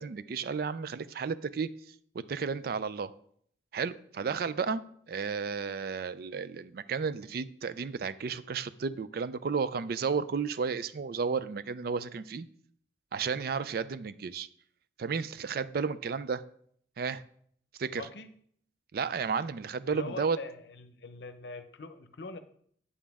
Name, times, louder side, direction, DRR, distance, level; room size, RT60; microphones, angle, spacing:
voice 1, 0.0-1.7 2.1-3.1 3.7-12.5 13.1-14.5 15.0-16.4 17.0-17.2 17.8-18.0 18.9-20.4, right 5 dB, 55° right, 0.4 m, -33 dB
voice 2, 17.9-18.3 19.9-22.4, left 3 dB, 65° left, 0.7 m, -43 dB
8.5 x 7.3 x 3.5 m
head